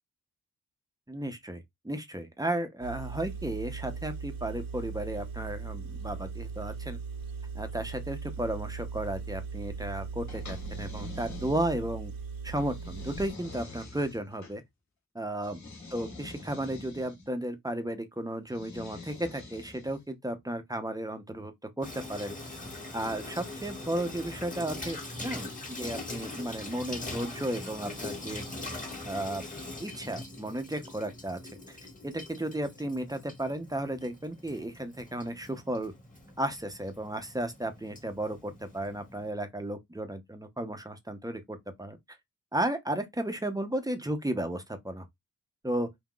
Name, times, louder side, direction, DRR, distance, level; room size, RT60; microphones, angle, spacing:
voice 1, 1.1-7.0 7.5-12.1 12.4-14.6 15.1-15.6 15.9-22.4 22.9-28.4 29.0-29.4 29.8-31.4 31.7-31.8 32.0-35.9 36.4-42.0 42.5-45.0 45.6-45.9, right 1 dB, 10° right, 0.8 m, -34 dB
Engine, 2.8-13.3, right 5 dB, 85° right, 1.2 m, -39 dB
sound 1, 10.3-12.0 12.6-14.6 15.4-17.3 18.5-20.1, left 3 dB, 55° left, 2.2 m, -45 dB
Water tap faucet / Sink (filling or washing), 21.8-39.3, left 2 dB, 25° left, 1.6 m, -42 dB
5.6 x 2.8 x 2.3 m
wide cardioid pair, 105°, 33 cm